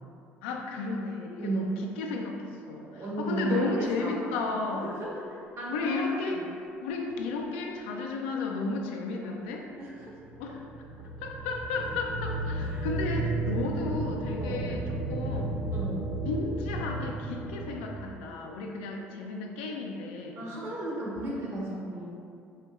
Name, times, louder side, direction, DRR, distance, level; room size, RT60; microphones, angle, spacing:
voice 1, 0.4-5.0 5.7-6.4 6.8-9.7 10.4-10.6 11.2-15.5 16.2-20.5, left 3 dB, 75° left, 1 dB, 0.4 m, -33 dB
voice 2, 1.4-1.7 2.7-4.4 4.8-5.3 5.6-6.4 9.2-9.4 9.8-10.2 12.7-12.9 14.4-14.7 15.7-16.1 20.3-22.1, right 2 dB, 50° right, -5 dB, 1.1 m, -34 dB
sound 1, 10.0-17.8, right 2 dB, 15° right, 0.5 m, -33 dB
4.3 x 2.6 x 2.3 m, 2.4 s
hypercardioid pair, 60°, 6 cm